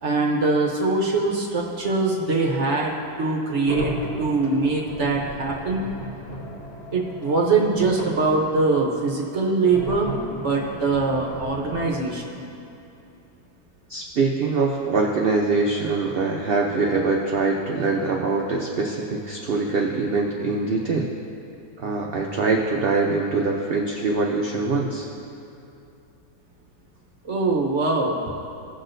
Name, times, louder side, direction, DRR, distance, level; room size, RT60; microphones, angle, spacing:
voice 1, 0.0-2.9 3.2-3.9 4.2-5.9 6.9-12.4 27.2-28.3, right 3 dB, 50° right, 0 dB, 1.0 m, -23 dB
sound 1, 3.6-8.4 9.7-11.9, right 1 dB, 60° left, 2.3 m, -35 dB
voice 2, 13.9-21.1 21.8-25.1, right 3 dB, 70° right, 0 dB, 0.5 m, -23 dB
16.5 x 6.1 x 2.6 m, 2.9 s
omnidirectional pair, 1.8 m